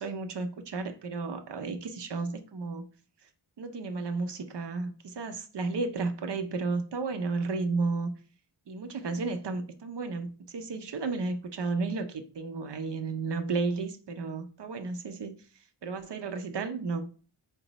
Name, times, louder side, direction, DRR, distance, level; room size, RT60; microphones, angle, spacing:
voice 1, 0.0-2.8 3.6-8.1 8.7-15.3 15.8-17.1, right 3 dB, 60° right, 0.6 m, -33 dB
4.3 x 2.0 x 3.9 m
wide cardioid pair, 80°, 47 cm